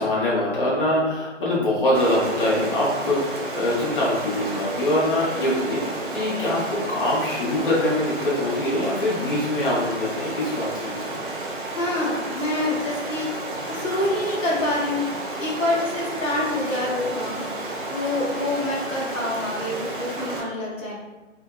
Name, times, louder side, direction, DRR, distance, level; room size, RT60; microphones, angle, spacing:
voice 1, 0.0-11.1 16.9-17.0, left 1 dB, 45° left, -7 dB, 0.7 m, -24 dB
Stream, 1.9-20.4, right 2 dB, 45° right, 0.4 m, -32 dB
voice 2, 11.7-13.3 13.7-15.1 15.4-17.4 17.9-20.9, left 1 dB, 85° left, -5 dB, 1.0 m, -26 dB
2.6 x 2.3 x 2.2 m, 1.1 s
figure-of-eight pair, 150°, 38 cm